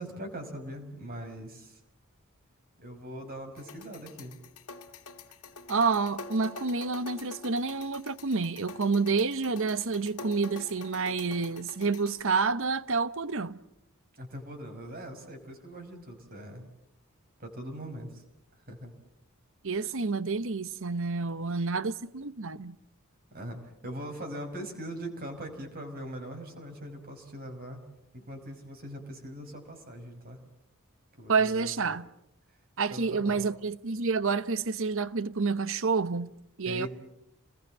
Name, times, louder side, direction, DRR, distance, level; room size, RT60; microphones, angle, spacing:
voice 1, 0.0-1.8 2.8-4.4 14.1-16.7 17.4-18.2 18.7-18.9 23.3-27.8 28.1-30.4 31.2-32.0 32.5-32.6 32.9-33.5 36.7-36.9, right 1 dB, 45° right, 5.6 m, -41 dB
sound 1, 3.6-12.2, left 3 dB, 80° left, 1.9 m, -46 dB
voice 2, 5.7-13.6 19.6-22.8 31.3-32.1 32.8-36.3 36.6-36.9, right 4 dB, 65° right, 1.0 m, -29 dB
28.5 x 20.5 x 7.7 m
head